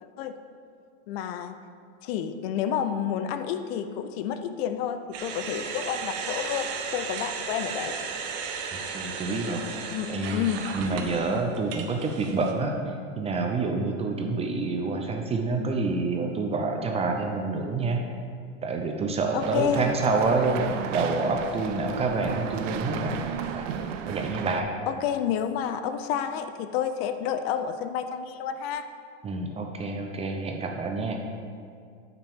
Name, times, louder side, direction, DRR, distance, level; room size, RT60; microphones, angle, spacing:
voice 1, 1.1-1.6 2.0-8.0 9.9-10.7 19.3-19.9 24.9-28.9, left 8 dB, 50° left, 9 dB, 0.6 m, -30 dB
sound 1, 5.1-12.5, right 5 dB, 40° right, 1.0 m, -35 dB
voice 2, 8.7-10.4 10.7-12.8 13.2-18.1 18.6-20.6 20.9-23.1 23.5-23.7 24.1-24.7 29.2-31.2, right 3 dB, 15° right, 3 dB, 0.5 m, -28 dB
sound 2, 19.4-24.6, right 8 dB, 75° right, 0.8 m, -34 dB
13.0 x 5.9 x 3.6 m, 2.3 s
supercardioid pair, 130°, 38 cm